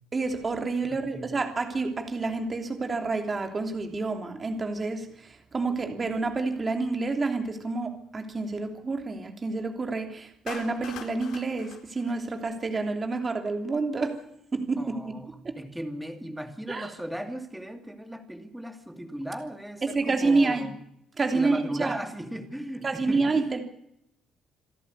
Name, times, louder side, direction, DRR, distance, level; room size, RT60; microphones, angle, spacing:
voice 1, 0.1-5.1 5.5-14.2 14.5-15.1 15.4-15.5 16.7-16.9 19.8-20.7 21.2-22.0 22.8-23.6, right 3 dB, 20° right, 5 dB, 3.0 m, -28 dB
voice 2, 0.8-1.3 14.8-20.8 21.3-23.4, right 1 dB, 5° right, 6 dB, 2.6 m, -37 dB
Clapping, 10.5-12.9, left 9 dB, 75° left, 3.8 m, -43 dB
27.5 x 11.5 x 9.7 m, 0.76 s
cardioid pair, 165°, 0 cm